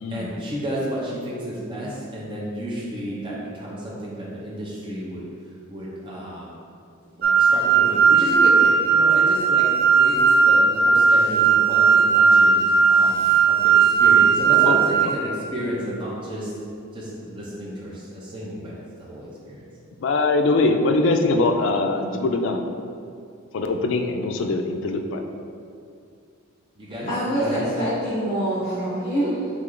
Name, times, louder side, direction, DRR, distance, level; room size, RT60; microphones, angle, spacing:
voice 1, 0.1-5.2 5.7-6.5 7.2-16.5 16.9-19.7 26.8-27.7, equal, 25° right, -6 dB, 0.6 m, -32 dB
sound 1, 7.2-15.1, right 5 dB, 65° right, 0.6 m, -17 dB
voice 2, 12.7-13.4 27.0-29.5, right 1 dB, 30° left, -12 dB, 1.0 m, -26 dB
voice 3, 20.0-22.6 23.5-25.2, left 3 dB, 60° left, 5 dB, 0.3 m, -22 dB
3.7 x 3.2 x 3.7 m, 2.4 s
head